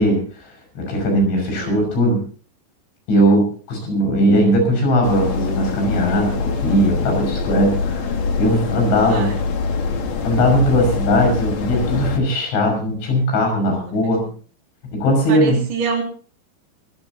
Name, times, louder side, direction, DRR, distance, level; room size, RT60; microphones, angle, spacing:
voice 1, 0.0-2.2 3.1-9.3 10.2-14.3 14.8-15.6, equal, 80° left, 4 dB, 8.4 m, -19 dB
sound 1, 5.0-12.2, left 4 dB, 55° left, 2.1 m, -24 dB
voice 2, 9.0-9.4 13.8-13.9 15.3-16.0, right 5 dB, 60° right, 0 dB, 4.9 m, -26 dB
24.0 x 15.0 x 2.8 m, 0.41 s
omnidirectional pair, 5.3 m